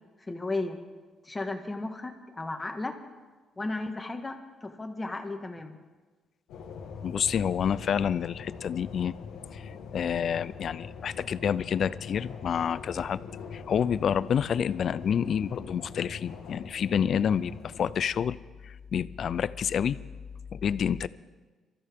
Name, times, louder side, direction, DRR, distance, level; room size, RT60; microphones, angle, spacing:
voice 1, 0.3-0.8 1.2-3.0 3.6-5.8, left 2 dB, 20° left, 5 dB, 1.6 m, -34 dB
sound 1, 6.5-18.0, left 5 dB, 90° left, 1.5 m, -43 dB
voice 2, 7.0-9.2 9.5-13.2 13.5-18.4 18.6-20.0 20.5-21.1, left 8 dB, 60° left, 17 dB, 0.5 m, -28 dB
23.5 x 14.0 x 3.7 m, 1.3 s
cardioid pair, 90°, 0 cm